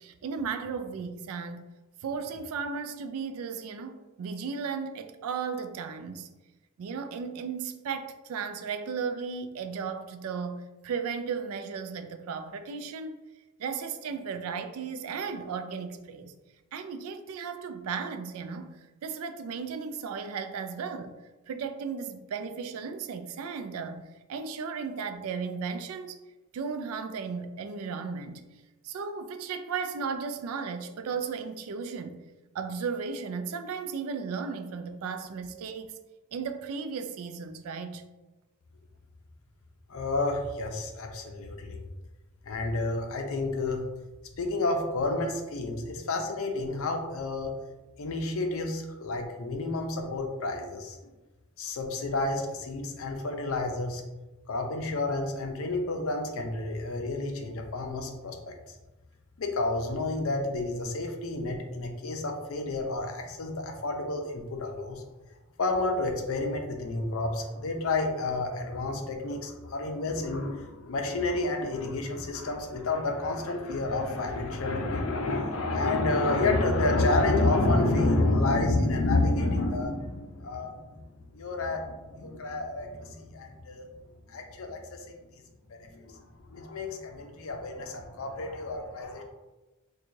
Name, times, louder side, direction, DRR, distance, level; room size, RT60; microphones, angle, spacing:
voice 1, 0.0-1.7 2.0-6.3 6.8-13.2 13.6-16.4 16.7-21.1 21.5-26.2 26.5-28.4 28.8-32.2 32.5-36.0 36.3-38.0, right 5 dB, 70° right, 0.3 m, -35 dB
voice 2, 39.9-41.8 42.5-43.8 44.4-47.5 48.0-51.0 51.6-54.0 54.5-58.5 59.4-65.0 65.6-81.0 81.3-83.8 84.3-85.2 85.7-89.2, left 2 dB, 65° left, 0.5 m, -30 dB
4.5 x 2.3 x 2.6 m
head